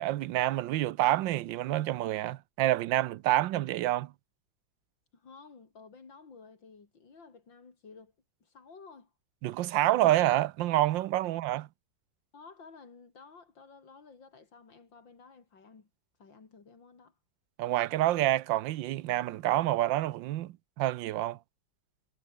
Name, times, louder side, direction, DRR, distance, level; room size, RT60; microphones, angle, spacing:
voice 1, 0.0-4.1 9.4-11.6 17.6-21.4, right 14 dB, 85° right, 1.4 m, -28 dB
voice 2, 5.1-8.1 8.4-9.1 11.5-11.6 12.3-15.9 16.2-17.2, left 4 dB, 85° left, 3.9 m, -53 dB
omnidirectional pair, 2.0 m